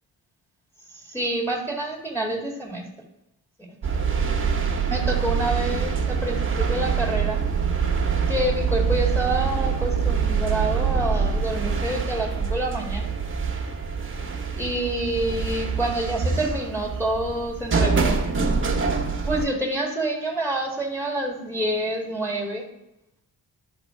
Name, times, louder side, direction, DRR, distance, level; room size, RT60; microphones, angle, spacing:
voice 1, 0.9-2.9 4.9-7.4 8.3-13.1 14.6-18.2 19.2-22.6, right 1 dB, 5° left, -1 dB, 2.0 m, -27 dB
sound 1, 3.8-19.5, right 5 dB, 35° right, 1.3 m, -25 dB
12.0 x 4.1 x 5.7 m, 0.89 s
wide cardioid pair, 140°, 37 cm